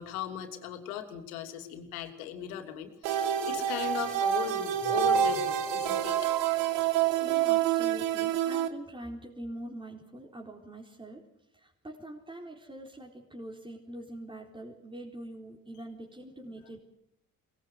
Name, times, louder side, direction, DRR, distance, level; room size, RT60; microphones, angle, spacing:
voice 1, 0.0-6.3, left 10 dB, 90° left, 5 dB, 3.1 m, -38 dB
sound 1, 3.0-8.7, right 9 dB, 80° right, 1.9 m, -27 dB
voice 2, 6.9-11.2 11.5-16.8, right 1 dB, 10° right, -1 dB, 4.3 m, -44 dB
23.5 x 19.5 x 8.3 m, 0.79 s
hypercardioid pair, 70°, 42 cm